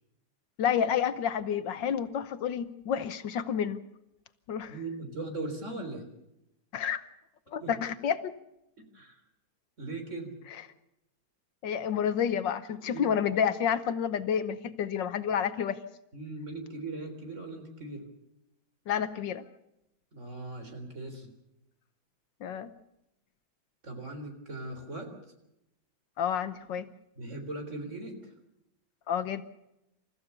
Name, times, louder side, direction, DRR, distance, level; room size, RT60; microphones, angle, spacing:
voice 1, 0.6-3.8 4.5-4.7 6.7-7.0 7.5-8.3 11.6-15.8 18.9-19.4 22.4-22.7 26.2-26.8 29.1-29.4, left 8 dB, 70° left, 12 dB, 1.6 m, -29 dB
voice 2, 4.7-6.1 7.6-7.7 8.8-9.2 9.8-10.3 12.9-13.1 16.1-18.0 20.1-21.3 23.8-25.1 27.2-28.3, right 2 dB, 40° right, 5 dB, 3.9 m, -39 dB
28.5 x 14.5 x 6.9 m, 0.87 s
omnidirectional pair, 2.1 m